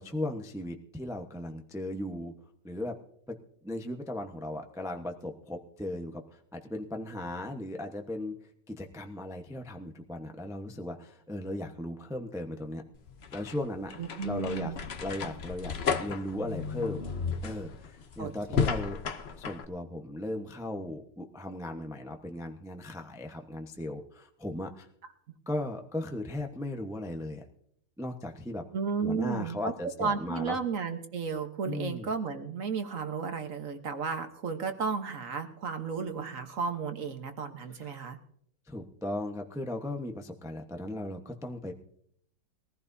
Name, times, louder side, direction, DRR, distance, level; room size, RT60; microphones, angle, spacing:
voice 1, 0.0-2.3 2.6-3.0 3.3-3.4 3.6-8.4 8.7-12.8 13.3-14.7 15.0-17.1 17.4-19.0 19.4-24.9 25.5-27.4 28.0-28.6 29.0-30.6 31.6-32.1 37.7-38.0 38.7-41.7, left 1 dB, 5° right, 3 dB, 0.5 m, -37 dB
sound 1, 12.9-19.6, left 6 dB, 60° left, 0.6 m, -34 dB
voice 2, 14.0-14.8 18.2-18.6 28.7-29.7 30.0-38.2, right 5 dB, 45° right, 7 dB, 1.3 m, -33 dB
22.0 x 15.0 x 2.7 m, 0.69 s
omnidirectional pair, 2.3 m